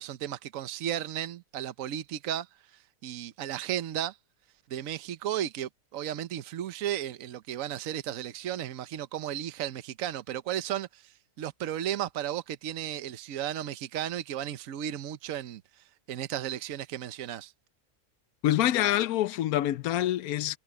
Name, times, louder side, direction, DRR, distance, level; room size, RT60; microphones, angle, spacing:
voice 1, 0.0-2.5 3.0-4.2 4.7-15.6 16.1-17.5, right 11 dB, 65° right, 1.2 m, -34 dB
voice 2, 18.4-20.6, left 13 dB, 80° left, 1.1 m, -26 dB
omnidirectional pair, 1.5 m